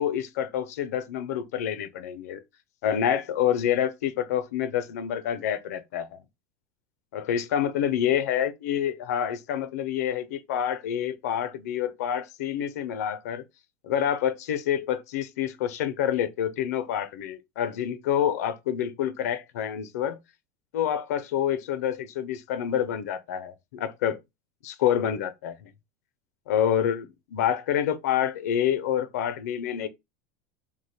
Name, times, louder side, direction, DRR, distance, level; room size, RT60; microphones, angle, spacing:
voice 1, 0.0-2.4 2.8-6.2 7.1-13.4 13.8-20.2 20.7-24.2 24.6-25.7 26.5-29.9, left 9 dB, 80° left, 0.4 m, -27 dB
2.8 x 2.1 x 4.0 m
supercardioid pair, 105°, 8 cm